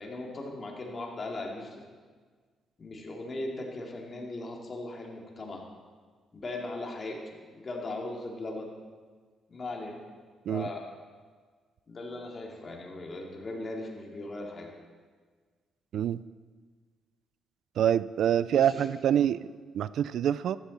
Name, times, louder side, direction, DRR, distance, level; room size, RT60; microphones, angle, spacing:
voice 1, 0.0-1.8 2.8-5.6 6.3-8.7 9.5-10.0 10.5-10.9 11.9-14.7 18.5-18.9 19.2-19.3, left 2 dB, 35° left, 0 dB, 2.7 m, -38 dB
voice 2, 17.8-20.6, right 10 dB, 70° right, 17 dB, 0.3 m, -26 dB
14.5 x 11.5 x 4.2 m, 1.5 s
cardioid pair, 90°, 0 cm